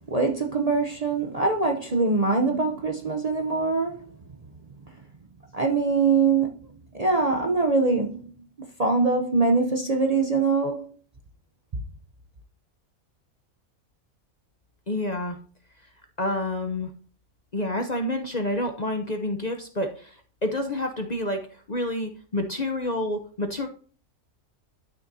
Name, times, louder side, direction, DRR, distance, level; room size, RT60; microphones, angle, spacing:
voice 1, 0.0-4.1 5.5-6.7 6.9-8.3 8.8-10.9, right 4 dB, 35° right, 0.7 m, -23 dB
voice 2, 14.9-15.4 16.2-16.9 17.5-21.4 21.7-23.7, left 1 dB, 35° left, 0.8 m, -28 dB
11.5 x 6.3 x 2.7 m
omnidirectional pair, 1.5 m